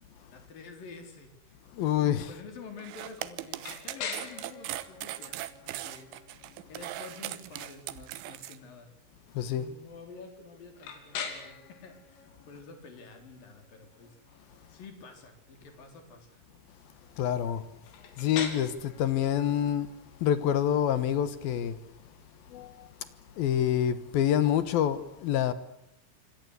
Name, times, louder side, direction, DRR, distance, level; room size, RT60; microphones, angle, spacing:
voice 1, 0.3-6.1 6.7-8.9 9.4-14.1 14.7-16.4, left 4 dB, 45° left, 5.5 m, -49 dB
voice 2, 1.7-2.4 9.3-9.7 17.2-17.7 18.2-19.9 20.2-21.8 22.5-22.9 23.4-25.5, left 10 dB, 70° left, 2.4 m, -27 dB
sound 1, 2.8-8.6, right 14 dB, 75° right, 3.5 m, -39 dB
sound 2, 3.6-23.4, left 6 dB, 90° left, 5.8 m, -45 dB
26.0 x 26.0 x 8.3 m
omnidirectional pair, 5.7 m